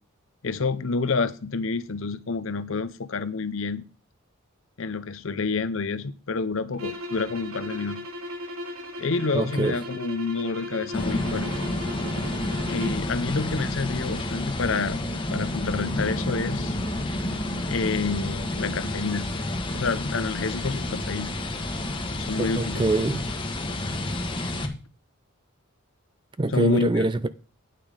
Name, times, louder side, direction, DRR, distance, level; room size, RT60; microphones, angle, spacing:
voice 1, 0.4-3.8 4.8-8.0 9.0-11.5 11.9-12.0 12.7-15.0 15.3-16.8 17.7-19.3 19.7-21.3 22.2-22.9 26.5-27.0, left 4 dB, 65° left, 0.7 m, -28 dB
sound 1, 6.7-13.1, left 1 dB, 75° right, 1.3 m, -37 dB
voice 2, 9.3-9.8 22.4-23.2 26.4-27.3, right 2 dB, 20° right, 0.4 m, -24 dB
sound 2, 10.9-24.7, left 1 dB, 25° left, 1.2 m, -29 dB
9.2 x 5.7 x 5.0 m
head